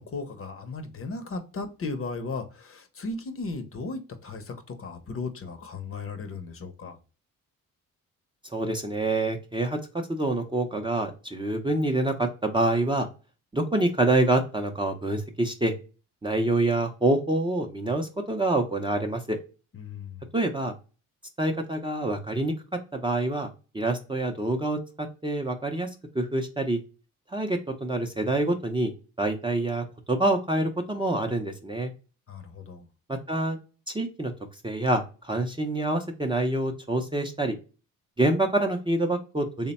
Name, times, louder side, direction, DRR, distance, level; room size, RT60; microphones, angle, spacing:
voice 1, 0.0-7.0 19.7-20.2 32.3-32.9, left 3 dB, 40° left, 0.7 m, -36 dB
voice 2, 8.5-13.1 13.5-15.7 16.2-19.4 20.3-20.7 21.4-22.5 22.9-23.5 23.7-25.9 26.1-26.8 27.3-28.9 29.2-31.9 33.1-33.6 33.9-34.3 34.6-37.5 38.2-39.7, right 2 dB, 15° right, 0.5 m, -26 dB
3.3 x 2.1 x 4.0 m
cardioid pair, 75°, 34 cm